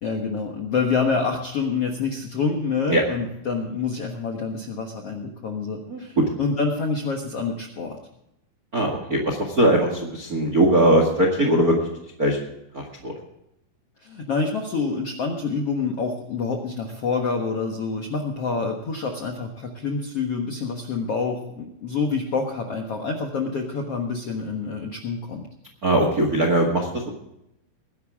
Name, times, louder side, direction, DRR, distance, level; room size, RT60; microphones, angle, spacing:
voice 1, 0.0-8.0 14.0-25.5, left 4 dB, 65° left, 2 dB, 1.5 m, -27 dB
voice 2, 8.7-11.8 12.2-12.4 12.7-13.1 25.8-27.1, right 1 dB, 40° right, 3 dB, 1.2 m, -20 dB
21.0 x 11.0 x 3.6 m, 0.82 s
omnidirectional pair, 4.8 m